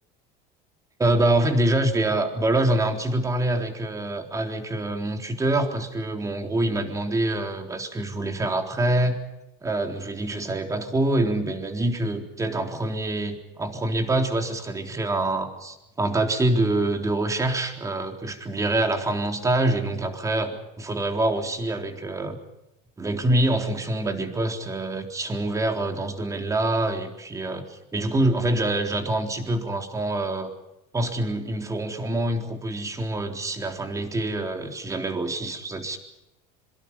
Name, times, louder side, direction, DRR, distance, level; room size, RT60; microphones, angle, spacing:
voice 1, 1.0-9.1 9.6-22.4 23.0-30.5 30.9-36.0, right 1 dB, 15° right, 4 dB, 3.8 m, -25 dB
26.5 x 23.5 x 5.6 m, 0.89 s
supercardioid pair, 125°, 19 cm